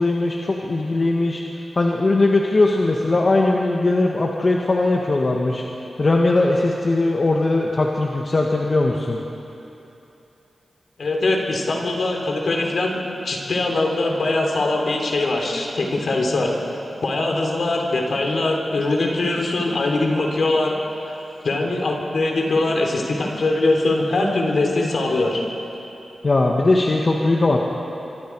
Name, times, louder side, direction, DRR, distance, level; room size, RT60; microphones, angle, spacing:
voice 1, 0.0-1.4 1.7-5.6 6.0-9.2 26.2-27.6, left 2 dB, 50° left, -1 dB, 1.8 m, -19 dB
voice 2, 11.0-20.8 21.4-25.4, left 2 dB, 70° left, 1 dB, 3.7 m, -22 dB
26.0 x 24.5 x 4.9 m, 2.9 s
cardioid pair, 50°, 0 cm